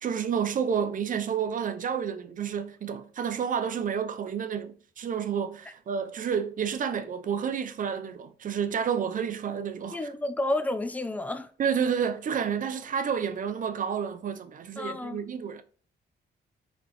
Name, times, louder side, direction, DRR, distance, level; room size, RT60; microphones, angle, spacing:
voice 1, 0.0-10.1 11.6-15.6, right 7 dB, 45° right, 0.5 m, -30 dB
voice 2, 9.9-11.5 14.8-15.2, left 1 dB, 10° left, 0.4 m, -30 dB
4.0 x 3.2 x 2.9 m
cardioid pair, 105°, 19 cm